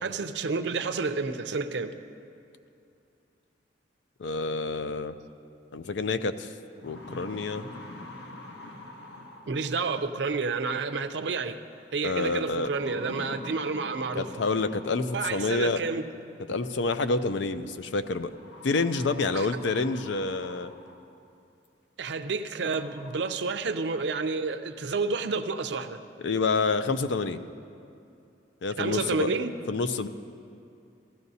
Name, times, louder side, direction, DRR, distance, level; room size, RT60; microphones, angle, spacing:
voice 1, 0.0-1.9 9.5-11.6 11.9-14.3 15.1-16.1 19.3-19.5 22.0-26.0 28.8-29.5, right 4 dB, 75° right, 8 dB, 0.5 m, -30 dB
voice 2, 4.2-5.2 5.7-6.5 6.8-7.7 12.0-12.7 14.2-15.8 16.5-18.3 18.6-20.7 26.2-27.4 28.6-29.3 29.7-30.1, left 3 dB, 85° left, 11 dB, 0.5 m, -28 dB
sound 1, 6.0-6.1 6.6-10.0 11.4-11.8 12.6-15.4 16.7-16.8 18.3-21.2 21.6-21.7 22.3-22.4 22.6-23.2, left 2 dB, 70° left, 1.0 m, -45 dB
16.0 x 13.5 x 2.7 m, 2.6 s
head